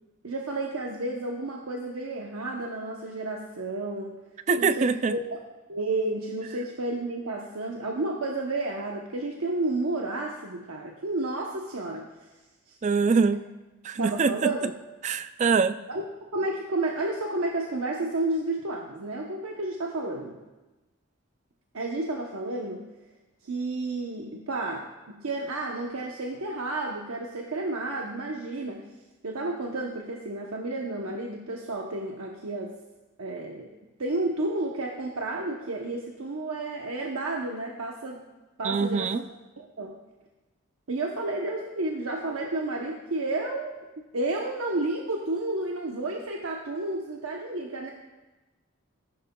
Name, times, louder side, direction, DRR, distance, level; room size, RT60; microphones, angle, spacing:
voice 1, 0.2-4.2 4.6-5.4 5.7-12.1 12.7-12.8 13.9-14.7 15.9-16.0 16.3-20.4 21.7-22.9 23.4-28.8 29.2-32.8 33.2-33.7 34.0-38.2 38.6-39.2 39.6-40.0 40.9-43.7 44.1-47.9, right 2 dB, 85° right, 0 dB, 0.8 m, -31 dB
voice 2, 4.5-5.2 12.8-13.4 13.8-14.5 15.0-15.8 38.6-39.2, right 5 dB, 35° right, 12 dB, 0.3 m, -24 dB
14.0 x 11.0 x 2.3 m, 1.1 s
head